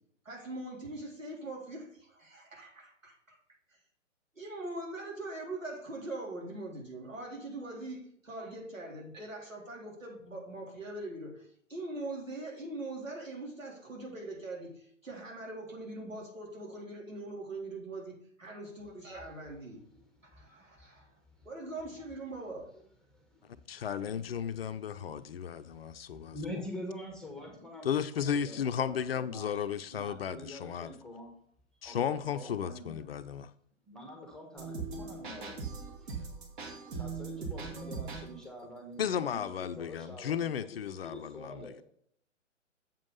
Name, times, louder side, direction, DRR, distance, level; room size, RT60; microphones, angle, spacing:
voice 1, 0.2-3.4 4.4-18.1 18.4-19.8 20.3-21.1 21.4-22.6, right 2 dB, 85° right, 3.7 m, -42 dB
voice 2, 20.3-21.1 21.4-21.5 23.7-25.8 26.1-29.6 29.9-31.3 31.8-33.0 33.9-35.5 36.0-36.2 36.9-41.8, left 1 dB, ahead, 1.2 m, -46 dB
voice 3, 23.7-26.4 27.8-30.9 31.8-33.5 39.0-41.8, left 8 dB, 50° left, 0.6 m, -34 dB
sound 1, 34.6-38.4, right 4 dB, 40° right, 1.8 m, -40 dB
7.4 x 5.2 x 5.4 m
figure-of-eight pair, 130°, 38 cm